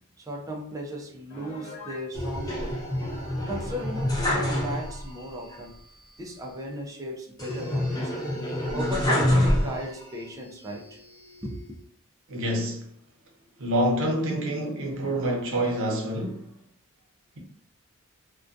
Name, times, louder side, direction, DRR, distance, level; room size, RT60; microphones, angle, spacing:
voice 1, 0.2-2.8 3.4-5.8 6.2-8.1 8.7-11.0 11.4-11.8, equal, 15° right, 0.3 m, -36 dB
Piano, 1.3-2.1, left 3 dB, 55° left, 0.9 m, -42 dB
sound 1, 2.1-5.2 5.5-5.6 7.4-10.1 10.7-11.5, left 1 dB, 20° left, 0.7 m, -27 dB
voice 2, 12.3-12.8 13.6-16.5, right 1 dB, 65° right, 0.6 m, -27 dB
2.3 x 2.2 x 2.5 m
head